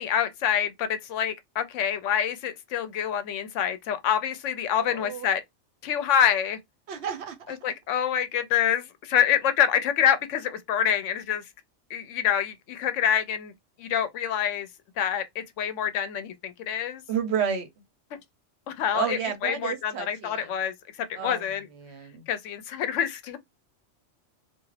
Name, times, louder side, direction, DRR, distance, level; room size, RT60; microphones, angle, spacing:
voice 1, 0.0-5.4 5.8-6.6 7.5-11.4 11.9-13.5 13.8-14.7 15.0-17.0 18.7-21.7 22.3-23.4, left 9 dB, 85° left, 0.9 m, -26 dB
voice 2, 4.8-5.3 6.9-7.6 17.1-17.7 18.9-20.5 21.2-21.4 21.8-22.2, right 8 dB, 65° right, 0.9 m, -31 dB
2.4 x 2.4 x 3.1 m
omnidirectional pair, 1.2 m